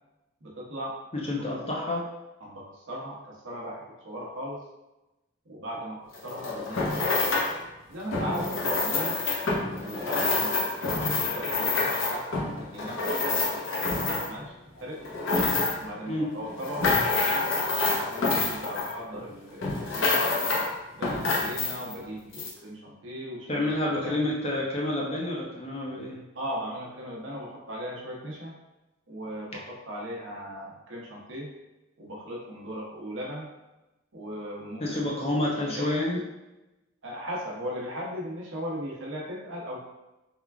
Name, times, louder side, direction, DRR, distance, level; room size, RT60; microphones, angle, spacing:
voice 1, 0.4-1.0 2.4-4.6 5.5-7.4 7.9-9.2 9.7-15.0 15.8-16.9 17.8-20.3 20.9-24.3 26.3-28.5 29.1-31.5 32.0-33.5 34.1-35.0 35.7-36.1 37.0-39.8, equal, 70° right, -3 dB, 0.9 m, -38 dB
voice 2, 1.1-2.0 16.1-16.3 23.5-26.2 34.8-36.2, left 1 dB, 30° left, -3 dB, 0.7 m, -29 dB
sound 1, 6.1-7.6 8.1-14.5 14.9-15.9 16.4-19.3 19.6-20.7 21.0-22.0 22.3-22.5, left 3 dB, 80° left, 0.7 m, -27 dB
3.6 x 2.4 x 3.4 m, 1.0 s
head